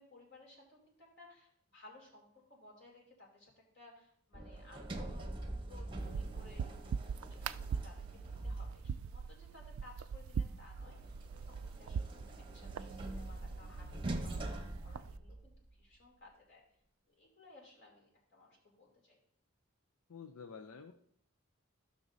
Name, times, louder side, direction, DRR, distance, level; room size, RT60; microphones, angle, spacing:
voice 1, 0.0-6.6 7.0-16.6 17.1-19.2, left 2 dB, 50° left, -2 dB, 3.0 m, -60 dB
Sliding door, 4.3-9.2 10.8-15.7, right 2 dB, 25° right, 0.9 m, -44 dB
sound 1, 6.0-15.2, right 6 dB, 75° right, 0.3 m, -42 dB
voice 2, 20.1-20.9, left 6 dB, 80° left, 5 dB, 0.6 m, -49 dB
15.0 x 6.2 x 2.7 m, 0.66 s
head